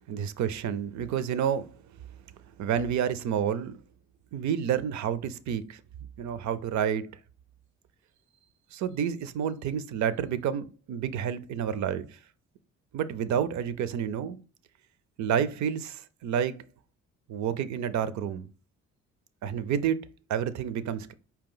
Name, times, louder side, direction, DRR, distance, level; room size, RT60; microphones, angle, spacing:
voice 1, 0.1-1.8 2.6-3.7 4.3-5.8 6.2-7.1 8.7-12.1 12.9-14.4 15.2-16.6 17.3-18.5 19.4-21.1, right 8 dB, 70° right, 0.5 m, -29 dB
4.6 x 2.9 x 3.8 m
cardioid pair, 90°, 30 cm